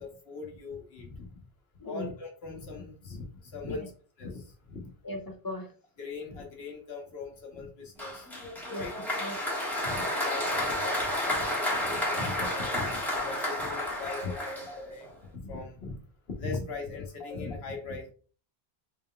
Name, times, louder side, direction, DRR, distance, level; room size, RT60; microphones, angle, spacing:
voice 1, 0.0-1.4 1.8-3.9 4.2-4.9 6.0-8.3 8.7-8.9 9.8-15.1 15.4-16.0 16.3-18.1, left 4 dB, 80° left, 2 dB, 1.3 m, -40 dB
voice 2, 5.0-5.7 8.7-9.4, left 1 dB, 35° left, 4 dB, 0.4 m, -38 dB
Applause, 8.0-15.1, left 1 dB, ahead, 1.3 m, -31 dB
4.1 x 3.7 x 2.2 m, 0.40 s
omnidirectional pair, 1.1 m